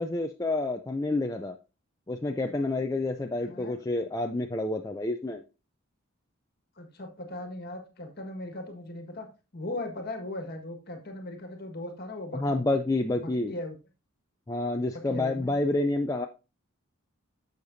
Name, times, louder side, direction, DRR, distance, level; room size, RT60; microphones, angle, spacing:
voice 1, 0.0-1.5 2.1-5.4 12.3-13.5 14.5-16.3, left 2 dB, 15° left, 4 dB, 0.4 m, -28 dB
voice 2, 3.4-3.8 6.7-9.3 9.5-12.6 13.1-13.7 14.9-15.6, left 2 dB, 45° left, 5 dB, 1.6 m, -38 dB
10.5 x 6.7 x 2.7 m, 0.30 s
head